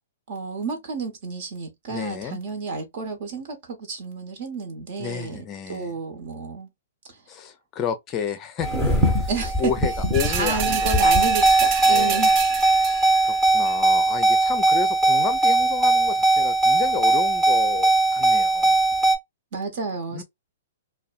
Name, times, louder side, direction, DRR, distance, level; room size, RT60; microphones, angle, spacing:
voice 1, 0.3-6.7 7.1-7.2 9.3-9.7 10.2-12.4 19.5-20.2, right 4 dB, 55° right, 1.1 m, -31 dB
voice 2, 1.9-2.4 5.0-5.9 7.3-9.3 9.6-11.3 11.8-12.3 12.8-18.7 20.1-20.2, left 7 dB, 25° left, 0.5 m, -31 dB
sound 1, 8.6-19.2, right 2 dB, 15° right, 0.9 m, -20 dB
sound 2, 10.1-13.2 13.7-13.8, right 9 dB, 35° right, 0.3 m, -29 dB
2.6 x 2.2 x 2.4 m
hypercardioid pair, 145°, 0 cm